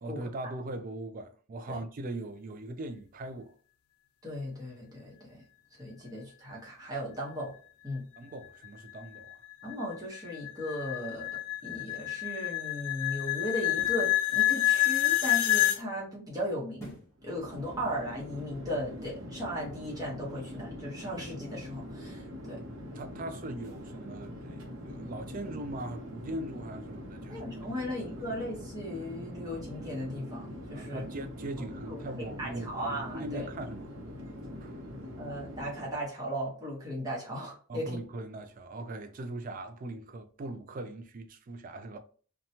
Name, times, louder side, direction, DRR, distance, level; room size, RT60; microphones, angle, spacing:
voice 1, 0.0-3.5 8.2-9.4 22.9-27.4 27.9-28.0 28.3-28.4 30.7-33.9 34.6-34.8 37.7-42.0, right 2 dB, 40° right, 0.3 m, -40 dB
voice 2, 4.2-5.4 5.7-7.5 7.8-8.1 9.6-16.9 17.2-22.6 27.3-31.0 31.9-33.5 35.2-38.0, equal, 15° right, 0.9 m, -37 dB
sound 1, 8.6-15.8, left 15 dB, 85° left, 0.4 m, -28 dB
sound 2, 11.8-11.9 13.6-14.1 16.8-17.2 17.7-17.8, right 1 dB, 15° left, 0.8 m, -47 dB
Chatter / Fixed-wing aircraft airplane, 17.2-36.1, left 1 dB, 80° right, 0.7 m, -43 dB
2.8 x 2.2 x 2.7 m
head